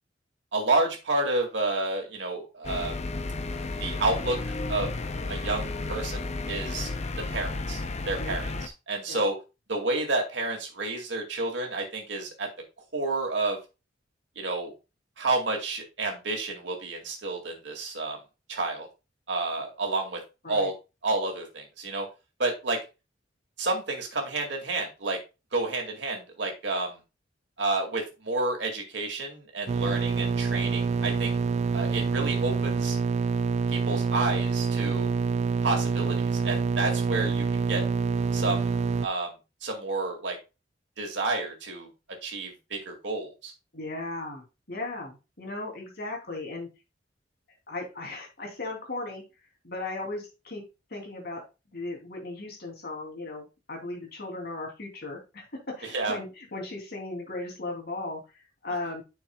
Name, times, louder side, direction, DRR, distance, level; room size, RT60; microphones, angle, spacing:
voice 1, 0.5-3.0 3.5-4.9 5.3-6.9 7.2-9.4 9.7-12.5 12.9-13.6 14.4-14.7 15.2-18.2 18.5-18.9 19.3-20.2 20.5-20.7 21.0-22.1 22.4-22.8 23.6-25.2 25.5-27.0 27.6-31.3 31.7-33.0 33.7-35.1 35.6-37.8 38.3-39.3 39.6-40.4 41.0-41.9 42.2-43.5 55.8-56.2, right 2 dB, 70° right, 2 dB, 2.2 m, -30 dB
sound 1, 2.6-8.7, left 3 dB, 35° left, 0.6 m, -33 dB
sound 2, 29.7-39.1, right 4 dB, 35° right, 0.3 m, -26 dB
voice 2, 43.7-46.7 47.7-49.2 49.6-50.6 50.9-51.4 51.7-59.0, left 2 dB, 60° left, 1 dB, 2.9 m, -37 dB
9.3 x 6.3 x 2.3 m, 0.28 s
head